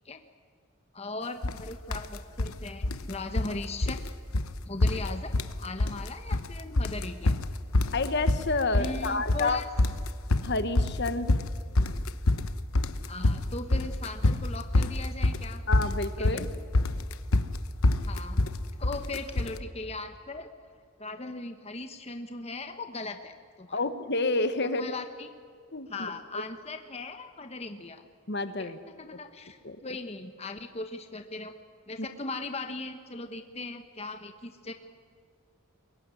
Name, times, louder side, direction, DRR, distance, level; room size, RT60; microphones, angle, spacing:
voice 1, 0.9-4.0 4.7-5.3 5.6-7.4 8.7-9.6 13.1-15.6 16.2-16.5 18.0-18.4 18.8-20.5 21.0-23.8 24.8-25.3 25.9-28.0 28.6-31.5 31.9-34.7, left 2 dB, 30° left, 7 dB, 1.2 m, -38 dB
sound 1, 1.4-1.6 1.9-2.5 2.8-3.6 3.8-4.1 4.3-4.5 4.8-5.5 5.8-6.5 6.8-19.6, left 2 dB, 75° left, 1.1 m, -26 dB
voice 2, 7.9-9.6 10.4-11.4 15.7-16.5 23.7-24.9 25.7-26.1 28.3-28.8 29.6-29.8, left 3 dB, 50° left, 10 dB, 1.4 m, -29 dB
23.5 x 21.5 x 9.8 m, 2.1 s
head